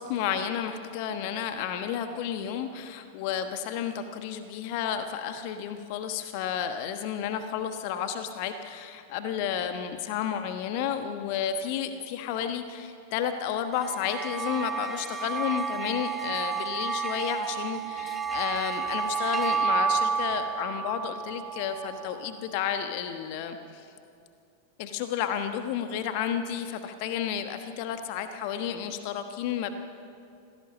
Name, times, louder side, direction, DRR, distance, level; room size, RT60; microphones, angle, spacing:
voice 1, 0.0-23.9 24.8-29.7, left 8 dB, 45° left, 8 dB, 1.2 m, -32 dB
sound 1, 13.8-22.4, right 5 dB, 10° right, 1.1 m, -31 dB
26.5 x 17.0 x 7.4 m, 2.6 s
figure-of-eight pair, 90°, 0 cm